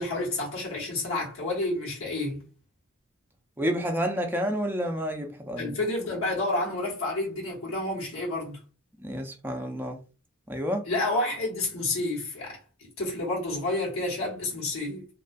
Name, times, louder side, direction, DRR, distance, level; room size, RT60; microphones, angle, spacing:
voice 1, 0.0-2.4 5.6-8.6 10.8-12.6 13.0-15.1, left 2 dB, 85° left, 1.0 m, -29 dB
voice 2, 3.6-5.8 9.0-10.0 10.5-10.8, equal, 10° right, 0.4 m, -29 dB
2.3 x 2.3 x 2.5 m
head